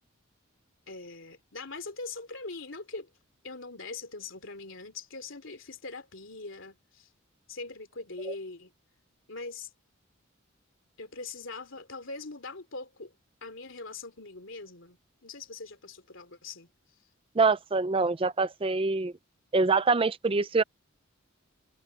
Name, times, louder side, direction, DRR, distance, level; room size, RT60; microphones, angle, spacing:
voice 1, 0.9-3.1 3.4-7.1 7.5-8.7 9.3-9.7 11.0-13.1 13.4-16.7, left 3 dB, 65° left, 3.3 m, -42 dB
voice 2, 17.4-19.1 19.5-20.6, right 4 dB, 25° right, 0.5 m, -25 dB
head